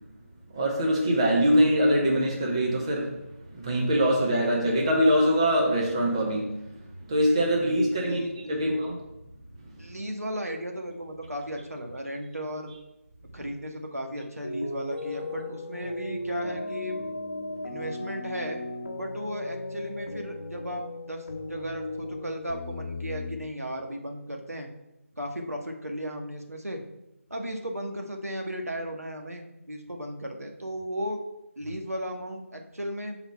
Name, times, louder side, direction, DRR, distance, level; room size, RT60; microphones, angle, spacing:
voice 1, 0.5-3.1 3.5-6.5 7.1-9.0, equal, 20° right, -2 dB, 0.9 m, -23 dB
voice 2, 7.6-8.6 9.8-12.7 13.3-17.0 17.6-18.6 19.0-24.7 25.2-26.8 27.3-31.2 31.6-33.2, equal, 80° right, 2 dB, 1.3 m, -35 dB
sound 1, 14.4-23.4, left 2 dB, 45° left, 1.2 m, -36 dB
6.1 x 4.0 x 5.6 m, 0.90 s
figure-of-eight pair, 160°, 8 cm